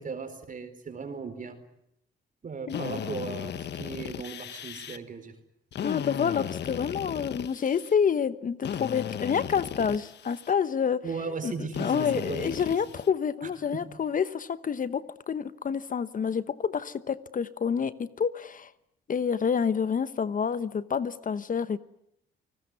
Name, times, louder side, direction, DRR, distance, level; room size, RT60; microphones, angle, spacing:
voice 1, 0.0-1.6 2.4-5.3 11.0-12.7 13.4-13.8, right 5 dB, 40° right, 8 dB, 4.3 m, -37 dB
Drill, 2.7-5.0 5.7-7.9 8.6-10.5 11.7-13.1, left 9 dB, 60° left, 1.3 m, -36 dB
voice 2, 5.8-11.0 11.4-18.7 19.1-21.8, left 7 dB, 45° left, 15 dB, 1.0 m, -28 dB
28.5 x 19.5 x 9.6 m, 0.75 s
cardioid pair, 90°, 20 cm